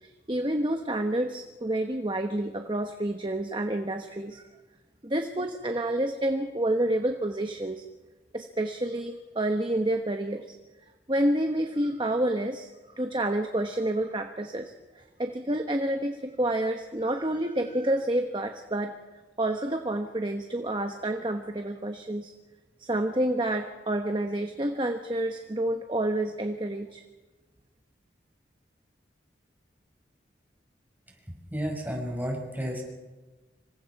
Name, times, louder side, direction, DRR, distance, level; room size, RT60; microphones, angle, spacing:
voice 1, 0.0-4.5 5.0-7.9 8.3-10.5 11.1-12.7 12.9-19.0 19.4-22.3 22.8-27.0, right 1 dB, 25° right, 5 dB, 1.1 m, -29 dB
voice 2, 31.5-32.8, equal, 10° right, 0 dB, 5.6 m, -31 dB
27.0 x 24.5 x 4.8 m, 1.2 s
head